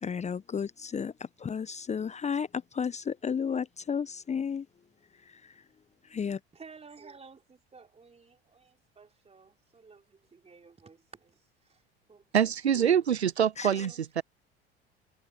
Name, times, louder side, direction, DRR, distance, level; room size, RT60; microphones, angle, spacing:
voice 1, 0.0-4.7 5.2-5.6 6.0-6.4 13.6-13.9, left 6 dB, 20° left, 1.1 m, -33 dB
voice 2, 6.6-7.4 7.7-8.4 9.0-10.0 10.3-11.0 12.1-12.2 13.7-13.8, right 5 dB, 20° right, 3.5 m, -51 dB
voice 3, 12.3-14.2, right 8 dB, 85° right, 0.6 m, -25 dB
figure-of-eight pair, 70°, 32 cm